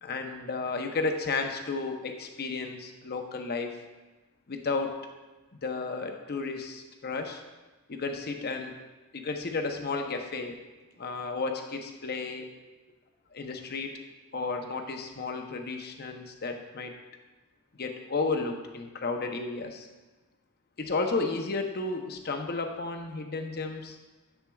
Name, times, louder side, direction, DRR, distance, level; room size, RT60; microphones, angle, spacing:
voice 1, 0.0-3.8 4.5-5.0 5.6-7.4 7.9-8.7 9.1-10.6 11.0-12.5 13.3-14.0 14.3-17.0 17.8-19.9 20.8-24.0, left 3 dB, 45° left, 4 dB, 0.7 m, -33 dB
10.0 x 7.3 x 2.3 m, 1.2 s
head